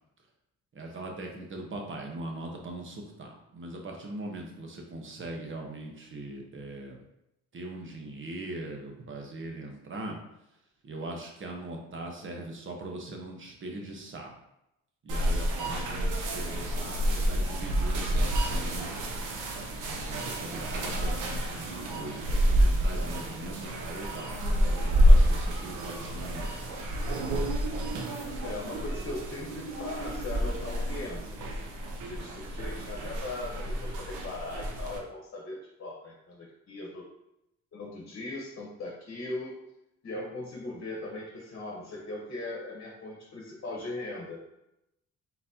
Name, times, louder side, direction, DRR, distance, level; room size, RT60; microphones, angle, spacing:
voice 1, 0.7-7.0 7.5-10.2 10.8-14.3 15.0-18.9 19.9-26.9, right 2 dB, 40° right, 1 dB, 1.0 m, -41 dB
sound 1, 15.1-35.0, equal, 90° right, 0.8 m, -28 dB
voice 2, 28.4-31.5 32.0-37.0 37.7-39.6 40.0-44.4, left 2 dB, 45° left, -2 dB, 1.2 m, -39 dB
4.1 x 4.0 x 2.8 m, 0.86 s
cardioid pair, 90°, 30 cm